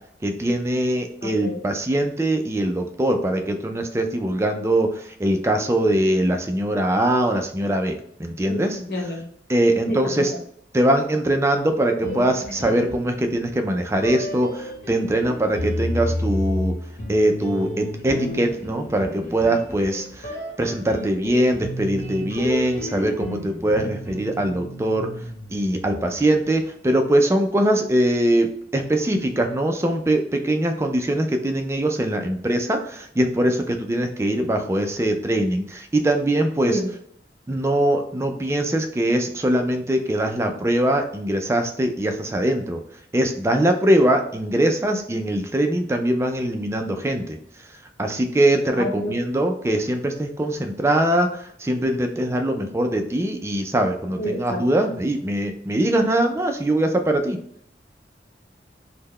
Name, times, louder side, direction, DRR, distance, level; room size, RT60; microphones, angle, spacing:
voice 1, 0.2-8.8 9.5-10.3 10.7-16.7 17.1-25.1 25.5-36.8 37.5-42.8 43.1-47.4 48.0-57.4, right 1 dB, 15° right, 5 dB, 0.3 m, -22 dB
voice 2, 1.2-1.6 8.5-9.2 9.9-10.2 36.6-36.9 48.8-49.1 54.2-54.6, equal, 60° left, 2 dB, 0.7 m, -28 dB
sound 1, 12.0-13.5 14.0-26.2, left 1 dB, 45° left, 1.1 m, -32 dB
3.7 x 2.1 x 3.1 m, 0.69 s
head